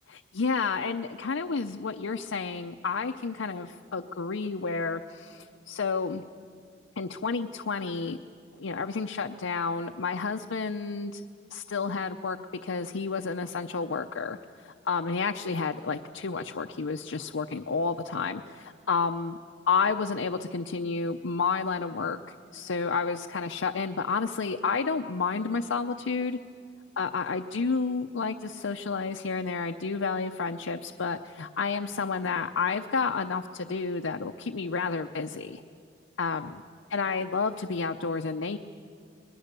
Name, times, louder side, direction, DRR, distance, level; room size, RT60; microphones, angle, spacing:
voice 1, 0.1-6.2 7.0-8.2 8.6-11.2 11.5-12.4 12.6-19.4 19.7-26.4 27.0-35.6 36.2-36.6 36.9-38.6, left 4 dB, 85° left, 5 dB, 0.6 m, -30 dB
26.0 x 20.5 x 6.8 m, 2.2 s
head